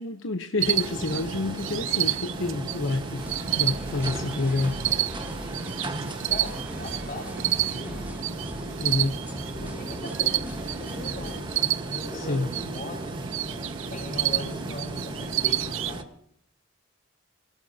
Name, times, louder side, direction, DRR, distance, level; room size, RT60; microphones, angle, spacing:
voice 1, 0.0-3.3 3.6-4.8 8.8-9.2 12.1-12.5 14.5-14.6, left 2 dB, 80° left, 6 dB, 1.0 m, -28 dB
sound 1, 0.6-16.0, right 1 dB, 25° right, 1.5 m, -37 dB
sound 2, 0.6-16.0, right 12 dB, 90° right, 0.6 m, -30 dB
sound 3, 3.2-11.4, equal, 10° right, 2.1 m, -41 dB
voice 2, 6.3-8.1 9.6-11.5 11.8-13.2 13.9-16.1, left 1 dB, 40° left, 1 dB, 6.2 m, -39 dB
27.5 x 17.5 x 2.9 m, 0.68 s
head